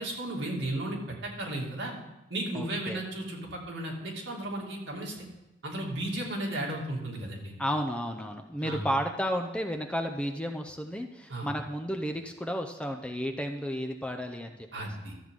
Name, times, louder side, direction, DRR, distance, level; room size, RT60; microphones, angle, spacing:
voice 1, 0.0-2.0 2.3-5.3 5.6-7.5 8.6-8.8 11.3-11.5 14.7-15.3, right 1 dB, 80° right, -2 dB, 2.4 m, -34 dB
voice 2, 2.5-3.0 7.6-14.9, equal, 5° left, 5 dB, 0.5 m, -33 dB
13.0 x 7.6 x 3.7 m, 0.97 s
head